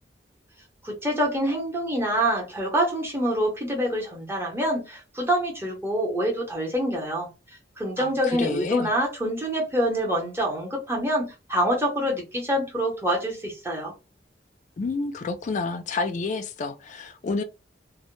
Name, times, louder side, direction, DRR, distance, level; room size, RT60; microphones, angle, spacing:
voice 1, 0.8-7.3 7.8-13.9, equal, 15° right, 0.8 m, -26 dB
voice 2, 8.0-8.9 14.8-17.4, left 3 dB, 40° left, 0.3 m, -29 dB
2.1 x 2.0 x 3.0 m
head